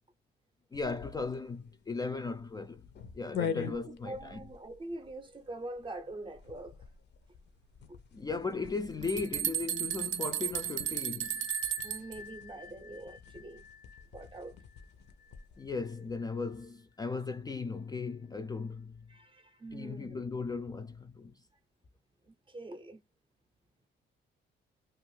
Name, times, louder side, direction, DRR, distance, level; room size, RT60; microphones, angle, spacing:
sound 1, 0.7-15.6, left 7 dB, 60° left, 0.6 m, -45 dB
voice 1, 0.7-2.8 3.1-4.4 8.1-11.4 15.6-19.0 19.7-21.3, left 4 dB, 20° left, 0.3 m, -37 dB
voice 2, 4.0-6.8 7.9-8.0 11.8-13.6 14.1-14.5 19.1-20.2 22.5-23.0, right 2 dB, 25° right, 0.6 m, -44 dB
sound 2, 8.6-8.7 9.0-12.2, right 11 dB, 75° right, 0.4 m, -34 dB
Bell, 11.2-16.7, left 7 dB, 90° left, 0.9 m, -50 dB
2.5 x 2.4 x 3.1 m
cardioid pair, 90°, 20 cm